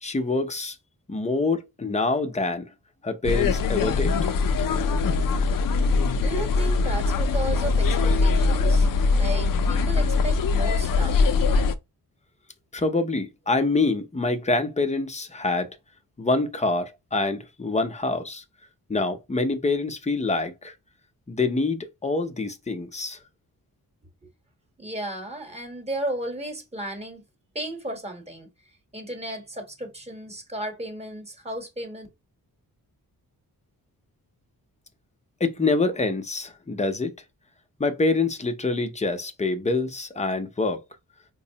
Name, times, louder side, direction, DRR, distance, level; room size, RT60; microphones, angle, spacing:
voice 1, 0.0-0.8 1.1-2.7 3.0-4.3 12.7-15.8 16.2-18.4 18.9-20.7 21.3-23.2 35.4-37.1 37.8-40.8, left 3 dB, 20° left, 0.6 m, -26 dB
sound 1, 3.2-11.8, left 4 dB, 65° left, 0.5 m, -22 dB
voice 2, 6.2-11.2 24.8-27.2 27.5-28.5 28.9-32.1, right 1 dB, 15° right, 1.1 m, -34 dB
4.5 x 2.1 x 2.7 m
wide cardioid pair, 90°, 37 cm